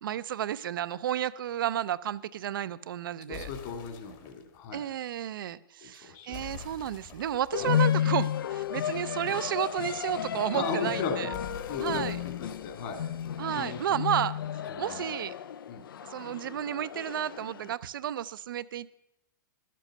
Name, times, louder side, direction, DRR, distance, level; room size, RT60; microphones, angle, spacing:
voice 1, 0.0-3.5 4.7-11.3 11.8-12.2 13.4-14.4 14.8-15.3 16.1-19.0, right 10 dB, 75° right, 17 dB, 0.5 m, -32 dB
voice 2, 3.3-4.8 5.8-6.3 7.5-7.7 10.5-11.3 11.7-12.0 12.4-13.0 13.5-14.0 14.7-15.1 15.7-15.8, left 5 dB, 50° left, 4 dB, 2.3 m, -36 dB
sound 1, 3.3-4.6 6.3-9.0 11.3-14.0, left 8 dB, 35° left, 1.2 m, -48 dB
sound 2, 7.5-17.7, left 10 dB, 80° left, 0.4 m, -32 dB
12.0 x 7.6 x 6.5 m, 0.90 s
hypercardioid pair, 125°, 11 cm